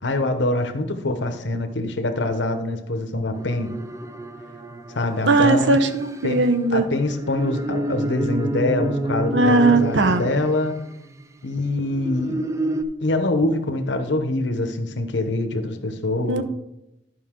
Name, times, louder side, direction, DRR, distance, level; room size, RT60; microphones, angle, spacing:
voice 1, 0.0-3.7 4.9-5.8 6.2-6.4 6.7-10.7 11.4-12.4 13.0-16.4, left 2 dB, 70° left, 7 dB, 0.9 m, -24 dB
sound 1, 3.4-11.2 11.9-12.8, right 1 dB, 15° right, 0.4 m, -29 dB
voice 2, 5.3-6.8 9.3-10.2 16.2-16.4, right 3 dB, 70° right, 9 dB, 0.8 m, -18 dB
11.5 x 5.3 x 3.7 m, 0.88 s
head